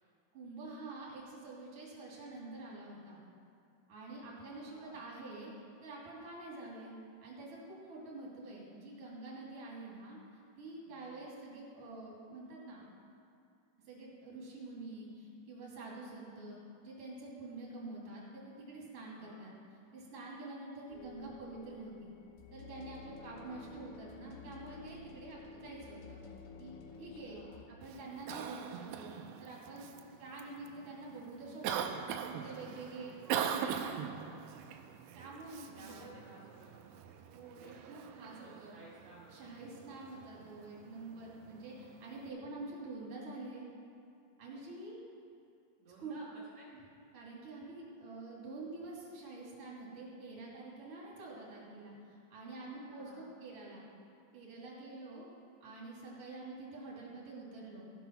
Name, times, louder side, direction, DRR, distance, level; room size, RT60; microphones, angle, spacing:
voice 1, 0.3-3.2 3.9-5.5 5.8-6.9 7.2-10.2 10.6-12.9 13.8-19.5 19.9-22.1 22.5-26.2 26.6-27.4 27.7-29.1 29.4-29.9 30.2-31.9 32.3-33.1 35.1-36.1 37.3-37.6 37.9-38.7 39.3-43.7 44.4-45.0 46.0-46.1 47.1-53.8 54.3-55.3 55.6-57.8, right 2 dB, 40° right, -5 dB, 2.7 m, -47 dB
voice 2, 4.6-5.0 10.8-11.3 19.1-19.5 23.2-23.6 26.9-27.6 32.7-33.9 35.5-39.7 45.8-46.3 46.5-46.7 52.6-53.3, right 2 dB, 55° right, -8 dB, 2.1 m, -58 dB
sound 1, 20.9-27.7, left 5 dB, 75° left, 3.0 m, -52 dB
Cough, 27.8-42.3, right 8 dB, 85° right, 2.4 m, -42 dB
16.0 x 6.1 x 5.8 m, 2.5 s
omnidirectional pair, 5.5 m